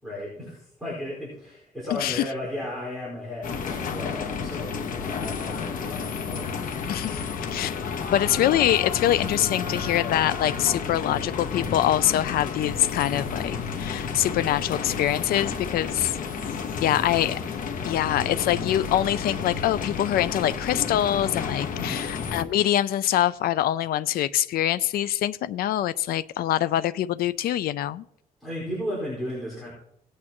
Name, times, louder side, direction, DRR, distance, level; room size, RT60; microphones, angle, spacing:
voice 1, 0.0-6.7 21.8-22.1 28.4-29.7, left 1 dB, ahead, -8 dB, 4.8 m, -35 dB
voice 2, 1.9-2.2 6.9-7.2 7.5-7.8 8.1-16.1 16.8-17.4 17.8-28.0, left 12 dB, 80° left, 15 dB, 0.4 m, -24 dB
sound 1, 3.4-22.4, left 5 dB, 65° left, 1.3 m, -31 dB
18.5 x 8.5 x 3.0 m, 0.75 s
cardioid pair, 135°, 15 cm